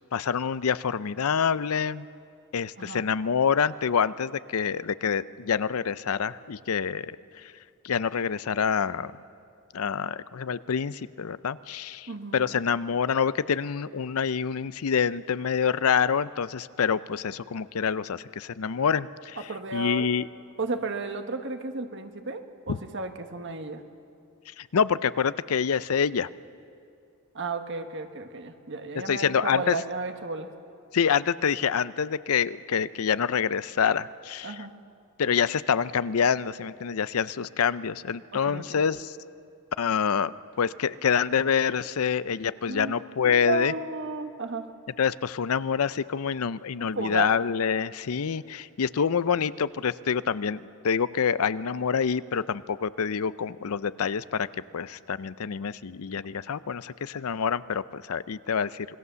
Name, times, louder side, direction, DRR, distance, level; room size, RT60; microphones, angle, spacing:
voice 1, 0.1-2.1 2.5-7.2 7.4-7.5 7.8-9.1 9.7-19.4 19.7-20.3 22.7-22.8 24.6-26.3 29.1-29.8 30.9-34.6 35.2-39.2 39.8-43.7 45.0-54.5 54.7-58.9, left 7 dB, 75° left, 16 dB, 0.5 m, -26 dB
voice 2, 12.1-12.4 19.4-20.0 20.6-23.8 27.3-30.5 34.4-34.7 38.3-38.8 42.7-42.9 43.2-44.7 46.8-47.3, right 3 dB, 55° right, 7 dB, 1.4 m, -33 dB
26.0 x 20.5 x 6.9 m, 2.5 s
head